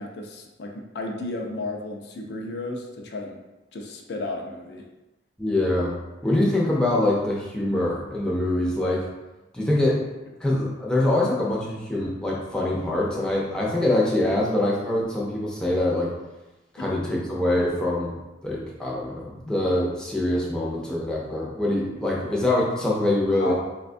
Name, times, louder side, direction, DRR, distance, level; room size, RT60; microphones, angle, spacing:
voice 1, 0.0-3.4 3.7-4.8 16.8-16.9 23.4-23.5, left 2 dB, 65° left, 1 dB, 0.4 m, -33 dB
voice 2, 5.4-5.9 6.2-9.1 9.5-10.0 10.4-16.1 16.7-18.2 18.4-23.5, left 1 dB, 5° left, -5 dB, 0.5 m, -24 dB
4.1 x 2.2 x 2.5 m, 1.0 s
head